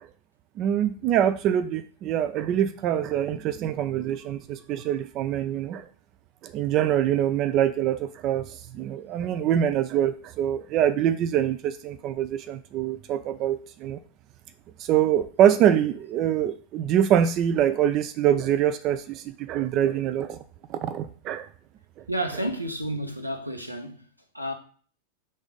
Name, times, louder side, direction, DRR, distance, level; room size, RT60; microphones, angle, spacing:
voice 1, 0.6-5.8 6.4-14.0 14.8-20.4 20.7-21.5, right 10 dB, 35° right, 0.4 m, -24 dB
voice 2, 22.1-24.1 24.3-24.5, right 1 dB, 90° right, 0.9 m, -30 dB
5.3 x 3.5 x 5.1 m
figure-of-eight pair, 90°, 0 cm